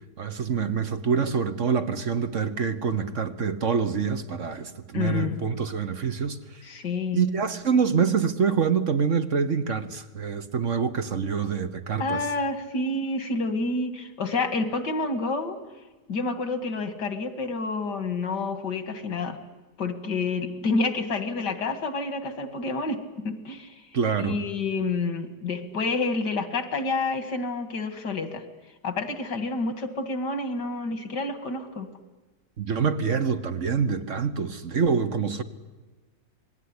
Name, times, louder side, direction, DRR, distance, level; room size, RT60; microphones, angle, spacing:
voice 1, 0.2-6.4 7.1-12.2 23.9-24.4 32.6-35.4, right 6 dB, 50° right, 1.5 m, -26 dB
voice 2, 4.9-5.4 6.6-7.2 12.0-15.6 16.1-19.4 19.8-23.8 24.2-28.4 28.8-31.9, left 3 dB, 80° left, 2.7 m, -29 dB
27.0 x 20.5 x 9.9 m
omnidirectional pair, 1.8 m